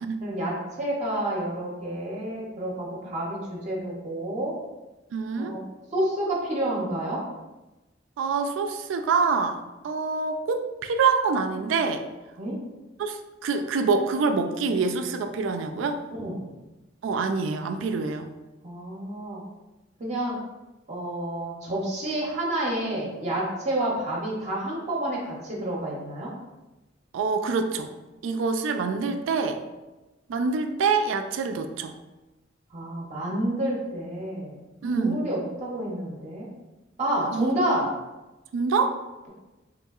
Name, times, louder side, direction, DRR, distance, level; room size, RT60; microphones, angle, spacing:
voice 1, 0.2-4.5 5.4-5.6 5.9-7.2 12.4-12.6 16.1-16.4 18.6-19.4 20.0-20.4 20.9-26.3 32.7-34.6 34.9-36.5 37.0-37.9, right 1 dB, 35° right, -4 dB, 0.6 m, -29 dB
voice 2, 5.1-5.5 8.2-12.0 13.0-16.0 17.0-18.3 27.1-27.9 28.2-29.6 30.3-31.9 34.8-35.3 37.3-37.5 38.5-38.9, right 4 dB, 75° right, 7 dB, 0.3 m, -26 dB
3.7 x 2.7 x 2.3 m, 1.1 s
head